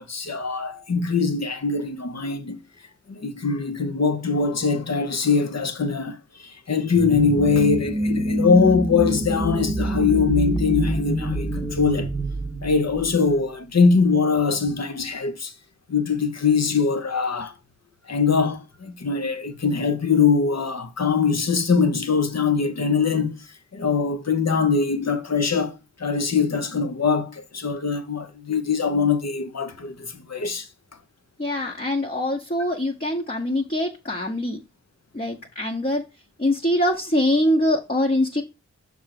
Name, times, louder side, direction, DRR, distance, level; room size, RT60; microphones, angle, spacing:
voice 1, 0.0-2.6 3.1-12.1 12.6-15.5 15.9-17.5 18.1-23.5 23.7-30.7, left 5 dB, 60° left, 1.0 m, -22 dB
sound 1, 6.9-13.4, right 1 dB, ahead, 1.2 m, -26 dB
voice 2, 31.4-34.6 35.1-36.0 36.4-38.4, left 1 dB, 30° left, 1.1 m, -23 dB
6.4 x 3.5 x 5.9 m
wide cardioid pair, 55°, 29 cm